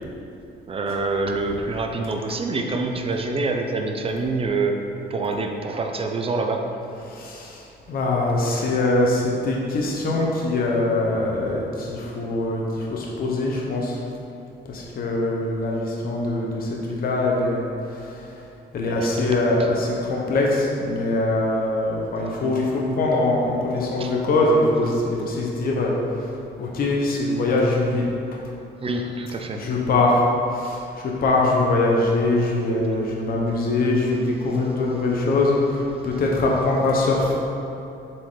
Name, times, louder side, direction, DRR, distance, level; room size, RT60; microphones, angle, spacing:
voice 1, 0.7-4.8 5.1-6.7 19.0-19.1 24.0-24.1 28.8-29.6, right 3 dB, 30° right, 4 dB, 0.6 m, -26 dB
voice 2, 7.0-7.6 7.9-14.0 14.7-17.6 17.9-18.1 18.7-26.2 26.6-28.0 29.5-37.4, left 2 dB, 55° left, -2 dB, 1.0 m, -22 dB
7.6 x 4.5 x 3.9 m, 2.7 s
cardioid pair, 130°, 18 cm